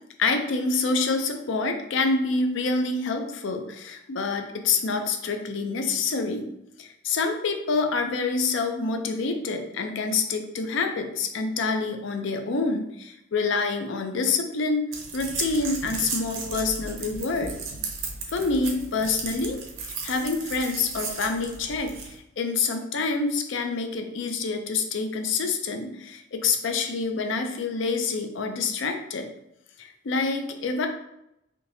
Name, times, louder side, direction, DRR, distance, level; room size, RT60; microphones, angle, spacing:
voice 1, 0.2-6.5 6.8-17.5 18.3-19.6 20.0-29.3 29.8-30.9, left 4 dB, 65° left, 5 dB, 0.4 m, -27 dB
sound 1, 14.9-22.2, right 4 dB, 70° right, 0.6 m, -35 dB
3.6 x 2.7 x 2.6 m, 0.82 s
head